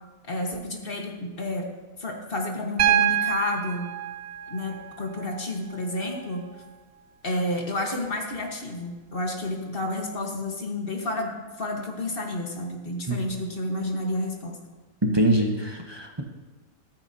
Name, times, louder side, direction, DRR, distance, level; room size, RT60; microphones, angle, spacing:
voice 1, 0.3-1.7 2.0-3.9 4.5-6.5 7.2-11.3 11.6-14.6, left 1 dB, 45° left, 1 dB, 1.5 m, -30 dB
Piano, 2.8-6.8 8.4-8.5, right 10 dB, 60° right, 0.9 m, -27 dB
voice 2, 15.0-16.2, right 1 dB, 20° right, 1 dB, 0.9 m, -23 dB
14.0 x 14.0 x 2.8 m, 1.3 s
omnidirectional pair, 1.4 m